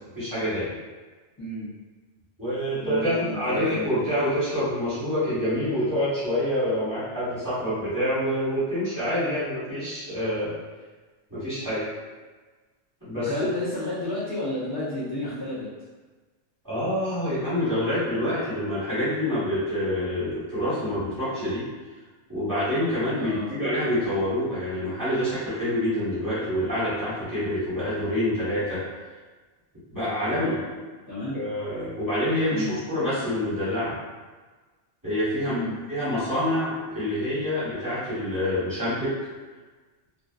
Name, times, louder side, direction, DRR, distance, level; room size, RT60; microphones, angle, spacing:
voice 1, 0.1-0.7 2.4-10.5 11.3-11.8 13.0-13.3 16.6-21.6 22.3-28.8 29.9-30.6 31.3-33.9 35.0-35.6 35.9-39.1, left 1 dB, 15° right, -13 dB, 1.3 m, -26 dB
voice 2, 1.4-1.7 2.8-3.8 13.3-15.7 23.2-23.5 30.2-30.6 31.1-31.4 32.5-32.8 35.5-35.7, left 1 dB, 30° left, -13 dB, 0.4 m, -31 dB
2.5 x 2.4 x 2.4 m, 1.3 s
omnidirectional pair, 1.3 m